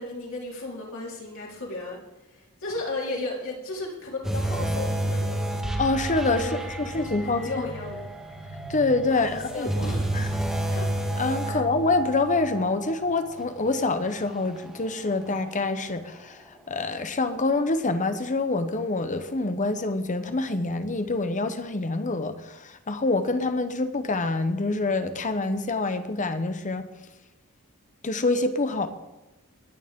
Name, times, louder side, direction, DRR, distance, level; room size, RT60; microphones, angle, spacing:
voice 1, 0.0-2.0 2.6-5.4 6.4-8.1 9.1-10.3 10.7-10.9 11.4-11.6, left 2 dB, 65° left, 4.0 m, -35 dB
sound 1, 4.2-15.7 16.1-16.3 16.9-17.0, right 1 dB, ahead, 2.0 m, -31 dB
voice 2, 5.8-6.6 6.9-7.5 8.7-9.7 10.1-10.3 10.7-10.8 11.2-16.4 16.7-26.9 28.0-28.9, left 3 dB, 35° left, 1.0 m, -26 dB
20.5 x 9.2 x 3.7 m
head